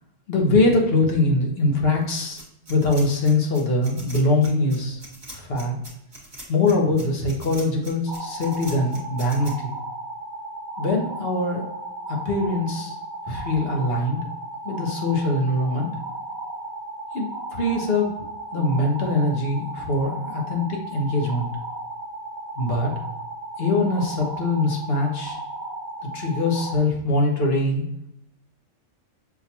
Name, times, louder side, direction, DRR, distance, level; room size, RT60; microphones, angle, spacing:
voice 1, 0.3-2.4 2.7-5.0 5.3-5.8 6.5-9.7 10.8-11.7 12.1-13.0 13.3-14.3 14.6-15.9 17.1-18.1 18.5-21.5 22.6-22.9 23.6-25.4 26.1-27.8, left 2 dB, 50° left, 0 dB, 1.0 m, -22 dB
sound 1, 2.4-9.5, right 1 dB, 20° right, 1.1 m, -41 dB
sound 2, 8.1-26.8, right 2 dB, 40° right, 1.0 m, -35 dB
5.9 x 2.3 x 2.8 m, 0.81 s
omnidirectional pair, 1.4 m